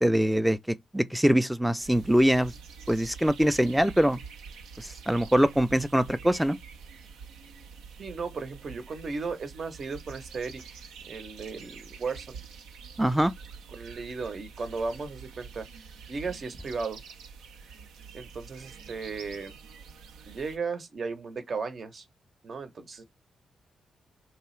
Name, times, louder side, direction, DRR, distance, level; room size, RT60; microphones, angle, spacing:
voice 1, 0.0-0.6 0.9-2.5 2.9-4.2 4.8-6.6 13.0-13.3, equal, 5° right, 0.4 m, -23 dB
sound 1, 1.8-20.6, right 6 dB, 80° right, 0.4 m, -46 dB
voice 2, 8.0-10.8 11.1-12.4 13.7-15.7 16.1-17.0 18.1-19.6 20.3-22.1 22.4-23.0, right 4 dB, 55° right, 0.8 m, -35 dB
2.8 x 2.3 x 3.1 m
hypercardioid pair, 45°, 0 cm